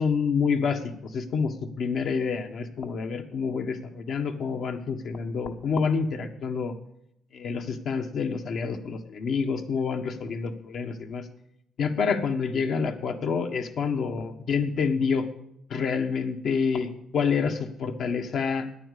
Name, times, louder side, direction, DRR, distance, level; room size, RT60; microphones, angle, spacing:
voice 1, 0.0-6.7 7.3-11.3 11.8-15.3 15.7-18.7, left 5 dB, 65° left, 5 dB, 1.6 m, -28 dB
10.0 x 9.1 x 8.4 m, 0.75 s
cardioid pair, 90°, 0 cm